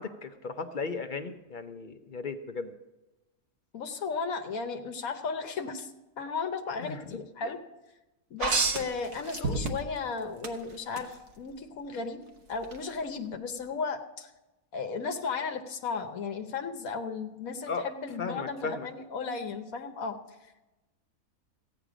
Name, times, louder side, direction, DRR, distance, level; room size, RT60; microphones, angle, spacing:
voice 1, 0.0-2.7 6.8-6.9 9.5-9.6 17.7-17.8 18.2-18.9, left 4 dB, 45° left, 8 dB, 0.7 m, -36 dB
voice 2, 3.7-5.9 6.2-7.6 8.3-12.2 12.5-14.3 14.7-20.2, left 5 dB, 75° left, 6 dB, 1.3 m, -35 dB
sound 1, 8.4-10.0 10.4-11.1 12.6-12.7, right 4 dB, 55° right, 1.3 m, -29 dB
14.5 x 9.1 x 5.0 m, 1.0 s
omnidirectional pair, 1.5 m